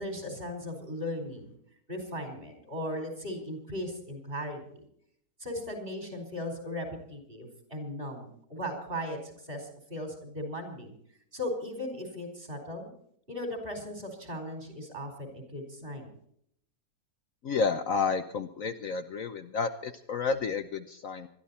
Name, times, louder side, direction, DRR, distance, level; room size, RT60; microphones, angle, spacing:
voice 1, 0.0-1.5 1.9-4.8 5.4-11.0 11.3-12.9 13.3-16.1, left 1 dB, 30° right, 4 dB, 5.0 m, -37 dB
voice 2, 17.4-21.3, left 5 dB, 60° left, 8 dB, 1.2 m, -31 dB
21.0 x 13.5 x 4.2 m, 0.69 s
omnidirectional pair, 1.7 m